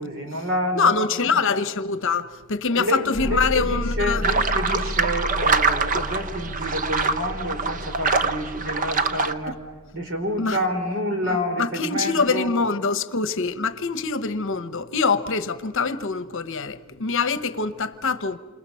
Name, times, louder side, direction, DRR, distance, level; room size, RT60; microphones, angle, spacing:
voice 1, 0.0-1.6 2.7-9.6 9.9-12.5, equal, 60° right, 4.1 m, -28 dB
voice 2, 0.7-4.2 8.9-9.0 9.5-9.6 10.4-10.6 11.2-18.4, left 4 dB, 60° left, 1.0 m, -24 dB
sound 1, 3.1-10.1, left 1 dB, 15° right, 2.7 m, -32 dB
sound 2, 4.2-9.3, right 4 dB, 40° right, 0.9 m, -24 dB
28.0 x 27.5 x 5.7 m
head